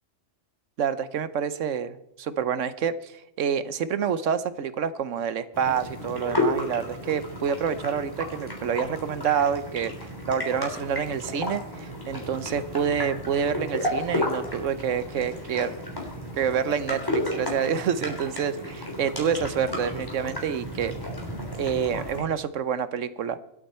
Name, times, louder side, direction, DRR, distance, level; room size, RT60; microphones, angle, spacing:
voice 1, 0.8-9.9 10.3-15.8 16.3-20.9 21.6-23.4, right 7 dB, 85° right, 14 dB, 1.2 m, -27 dB
sound 1, 5.5-22.2, left 1 dB, 15° left, 3.8 m, -33 dB
25.0 x 8.9 x 4.3 m, 0.85 s
omnidirectional pair, 1.3 m